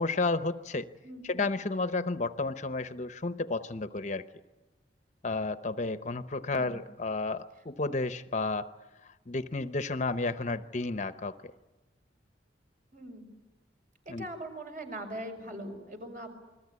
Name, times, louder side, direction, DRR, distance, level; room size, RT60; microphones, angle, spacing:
voice 1, 0.0-0.9 1.2-4.2 5.2-8.7 9.3-11.5 14.1-14.3, left 3 dB, 40° left, 11 dB, 0.8 m, -32 dB
voice 2, 1.0-1.5 6.5-6.8 12.9-13.3 14.1-16.3, right 1 dB, 45° right, 4 dB, 5.4 m, -41 dB
28.5 x 21.5 x 9.6 m, 1.1 s
head